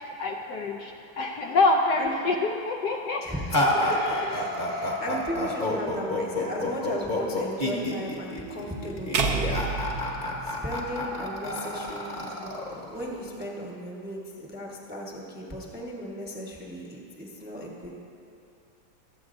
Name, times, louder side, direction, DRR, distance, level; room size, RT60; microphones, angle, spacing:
voice 1, 0.0-3.2 3.8-4.3, left 3 dB, 70° left, 1 dB, 1.1 m, -26 dB
voice 2, 3.2-9.5 10.4-18.0, equal, 5° right, -3 dB, 0.8 m, -36 dB
sound 1, 3.5-13.4, left 1 dB, 30° left, 1.1 m, -29 dB
sound 2, 9.1-11.4, right 4 dB, 60° right, 1.2 m, -29 dB
23.5 x 7.9 x 2.6 m, 2.6 s
omnidirectional pair, 2.1 m